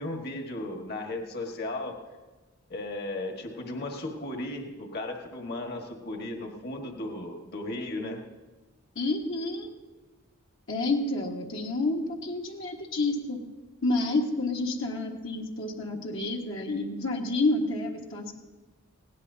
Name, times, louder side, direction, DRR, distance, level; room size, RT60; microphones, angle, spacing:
voice 1, 0.0-1.9 2.7-8.2, left 2 dB, 50° left, 2 dB, 1.6 m, -35 dB
voice 2, 8.9-9.7 10.7-13.4 13.8-18.3, left 2 dB, 65° left, -1 dB, 1.6 m, -29 dB
20.0 x 17.0 x 2.8 m, 1.3 s
head